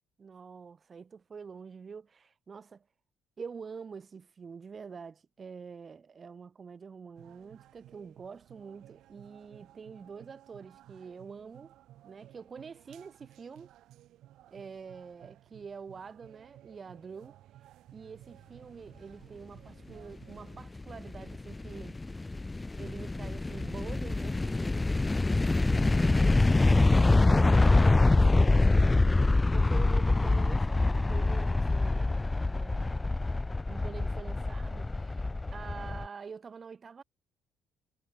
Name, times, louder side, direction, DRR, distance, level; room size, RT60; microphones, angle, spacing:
voice 1, 0.2-2.8 3.4-11.7 12.0-13.7 14.5-17.3 17.9-22.0 22.8-25.0 25.7-33.1 33.7-37.0, right 5 dB, 40° right, 4.5 m, -46 dB
sound 1, 7.2-20.6, right 14 dB, 70° right, 7.3 m, -56 dB
sound 2, 20.5-36.1, left 2 dB, 20° left, 0.4 m, -25 dB
hypercardioid pair, 55°, 0 cm